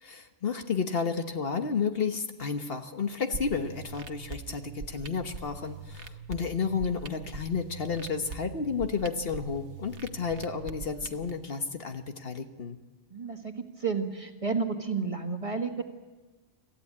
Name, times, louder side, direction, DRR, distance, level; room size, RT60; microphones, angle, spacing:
voice 1, 0.0-12.8, left 5 dB, 55° left, 6 dB, 1.4 m, -32 dB
sound 1, 3.3-11.3, right 4 dB, 80° right, 1.3 m, -43 dB
voice 2, 13.1-15.8, right 5 dB, 30° right, 4 dB, 1.7 m, -31 dB
26.0 x 15.0 x 8.7 m, 1.3 s
omnidirectional pair, 1.2 m